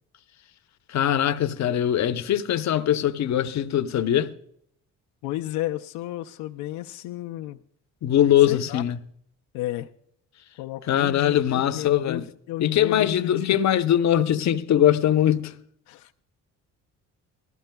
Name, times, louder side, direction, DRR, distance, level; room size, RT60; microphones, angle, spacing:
voice 1, 0.9-4.3 8.0-9.0 10.9-12.2 12.6-15.5, left 11 dB, 55° left, 0.7 m, -21 dB
voice 2, 5.2-7.6 8.5-8.8 9.5-9.9 10.6-13.6 15.9-16.1, left 14 dB, 90° left, 0.5 m, -32 dB
18.5 x 13.0 x 2.2 m
supercardioid pair, 75°, 34 cm